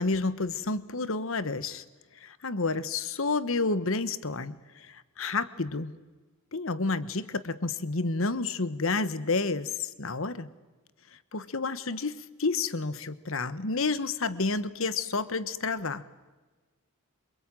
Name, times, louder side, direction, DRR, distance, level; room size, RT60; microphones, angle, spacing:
voice 1, 0.0-1.8 2.2-6.0 6.5-10.5 11.3-16.0, left 3 dB, 65° left, 15 dB, 1.2 m, -30 dB
26.0 x 23.0 x 9.0 m, 1.3 s
head